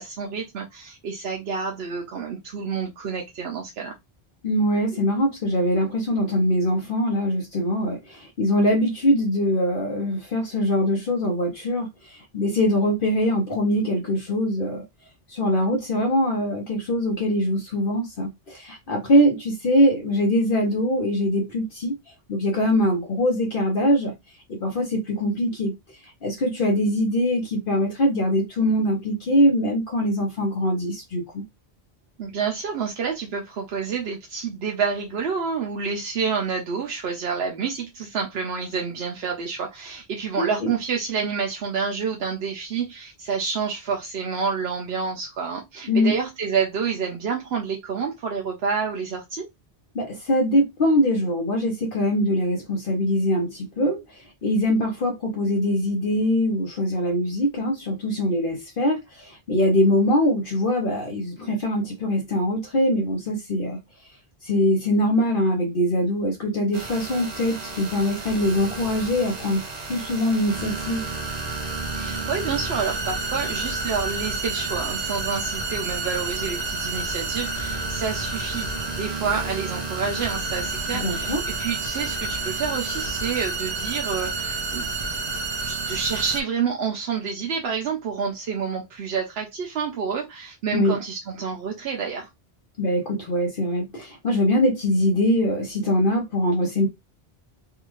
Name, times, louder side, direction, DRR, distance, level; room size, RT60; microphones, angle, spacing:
voice 1, 0.0-3.9 32.2-49.5 71.9-85.2 85.6-92.3, right 6 dB, 80° right, 0.9 m, -28 dB
voice 2, 4.4-14.8 15.3-21.9 22.3-24.1 24.5-25.7 26.0-31.4 40.4-40.7 45.9-46.1 49.9-63.8 64.4-71.0 81.0-81.4 90.7-91.0 92.8-96.9, equal, 60° left, 1.0 m, -23 dB
sound 1, 66.7-86.4, right 3 dB, 45° right, 0.7 m, -30 dB
3.5 x 2.4 x 3.0 m
omnidirectional pair, 1.0 m